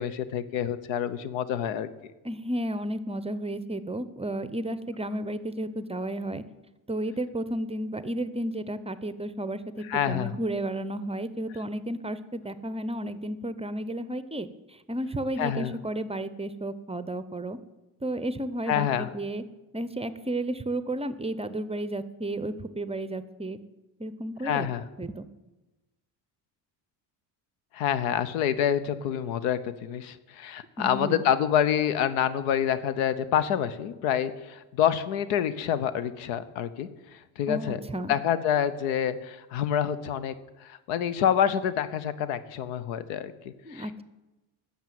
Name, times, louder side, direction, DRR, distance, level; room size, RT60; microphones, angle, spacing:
voice 1, 0.0-1.9 9.9-10.3 15.4-15.7 18.7-19.1 24.4-24.8 27.7-36.9 37.4-37.8 38.1-40.3 40.6-44.0, left 9 dB, 85° left, 15 dB, 0.9 m, -27 dB
voice 2, 2.2-6.4 6.9-17.6 18.0-19.4 19.7-23.6 24.0-24.7 25.0-25.3 30.8-31.2 37.5-38.2 43.6-44.0, right 1 dB, 15° right, 14 dB, 0.7 m, -32 dB
10.5 x 7.2 x 9.3 m, 1.1 s
supercardioid pair, 80°, 46 cm